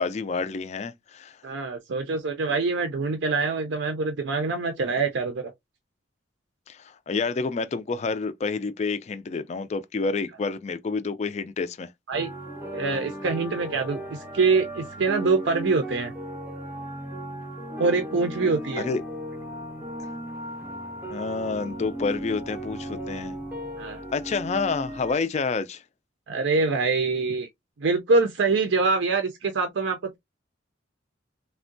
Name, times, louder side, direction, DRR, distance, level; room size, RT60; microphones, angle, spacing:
voice 1, 0.0-1.4 6.7-11.9 18.8-19.0 21.1-23.3 24.1-25.8, left 4 dB, 35° left, 0.3 m, -29 dB
voice 2, 1.4-5.5 12.1-12.3 12.7-16.1 17.8-18.9 23.8-24.0 26.3-27.5 27.8-30.2, right 4 dB, 70° right, 0.5 m, -25 dB
sound 1, 12.1-25.2, right 1 dB, 10° right, 0.6 m, -36 dB
3.5 x 2.1 x 2.5 m
head